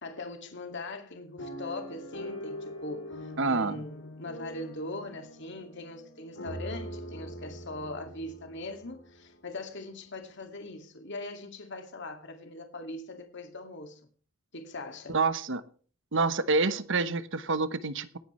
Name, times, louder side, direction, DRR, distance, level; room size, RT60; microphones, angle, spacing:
voice 1, 0.0-14.0 14.5-15.2, left 2 dB, 60° left, 2.2 m, -41 dB
sound 1, 1.4-9.5 10.1-10.2 10.4-10.7, equal, 75° left, 3.6 m, -43 dB
voice 2, 3.4-3.8 15.1-15.6 16.1-18.2, right 3 dB, 60° right, 1.1 m, -27 dB
19.0 x 9.8 x 3.2 m
head